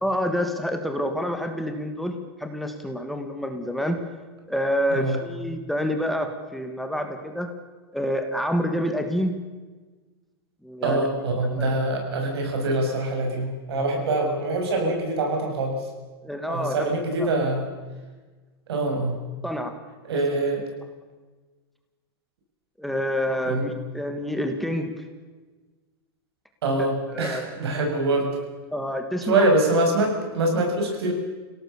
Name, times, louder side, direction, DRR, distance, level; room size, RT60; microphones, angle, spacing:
voice 1, 0.0-4.0 4.5-7.5 7.9-9.3 10.6-11.1 14.2-14.3 16.2-16.9 17.2-17.3 19.4-19.8 20.1-20.2 22.8-25.0 27.1-27.5 28.7-29.5, equal, ahead, 5 dB, 1.4 m, -27 dB
voice 2, 10.8-15.7 16.5-17.6 18.7-19.2 20.0-20.6 23.4-23.6 26.6-28.3 29.2-31.1, right 2 dB, 90° right, 2 dB, 7.1 m, -24 dB
28.5 x 17.5 x 7.0 m, 1.3 s
supercardioid pair, 170°, 13 cm